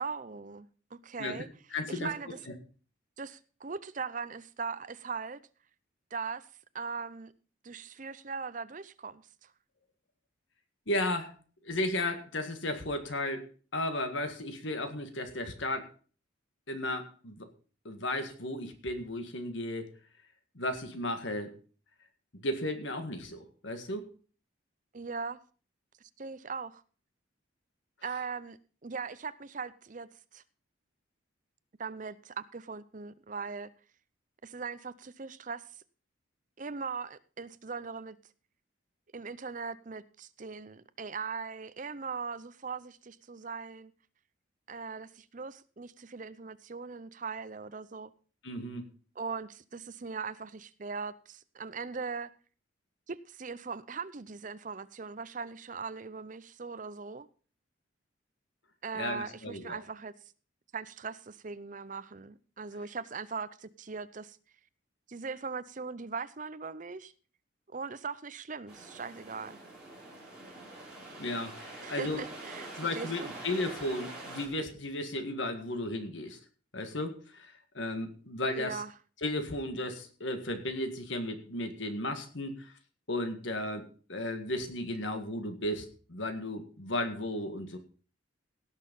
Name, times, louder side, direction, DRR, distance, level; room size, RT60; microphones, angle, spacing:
voice 1, 0.0-1.5 1.9-2.4 3.2-5.4 6.1-6.4 6.7-7.3 7.6-9.2 24.9-25.4 26.2-26.8 28.0-30.4 31.8-33.7 34.4-35.6 36.6-38.2 39.1-43.9 44.7-48.1 49.2-52.3 53.1-57.3 58.8-60.1 60.7-64.4 65.1-67.1 67.7-69.6 71.8-73.3 78.5-78.9, right 5 dB, 40° right, 15 dB, 0.6 m, -40 dB
voice 2, 1.7-2.1 10.9-11.3 11.6-13.4 13.7-15.9 16.7-17.5 17.9-19.9 20.6-21.5 22.4-24.1 48.4-48.8 58.9-59.8 71.2-72.2 72.8-76.4 76.7-78.8 79.2-82.7 83.1-87.8, left 1 dB, 70° left, 6 dB, 1.9 m, -34 dB
sound 1, 68.7-74.5, right 2 dB, 5° right, 4.3 m, -45 dB
17.5 x 6.5 x 5.4 m, 0.39 s
head